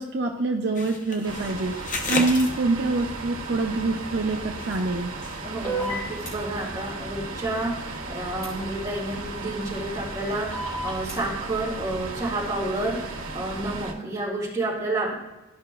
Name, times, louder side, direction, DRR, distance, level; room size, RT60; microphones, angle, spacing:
voice 1, 0.0-1.7 2.1-5.1, right 3 dB, 60° right, 1 dB, 0.6 m, -25 dB
sound 1, 0.7-3.2 4.0-5.4 5.7-5.9 6.2-6.3, left 3 dB, 40° left, 0.8 m, -33 dB
sound 2, 1.2-13.9, right 2 dB, 85° right, 1.4 m, -36 dB
voice 2, 5.4-15.1, right 2 dB, 15° right, -6 dB, 2.4 m, -30 dB
sound 3, 5.6-6.3 8.4-8.5 10.5-11.1, right 2 dB, 20° left, 2.3 m, -30 dB
13.0 x 5.7 x 2.4 m, 1.0 s
head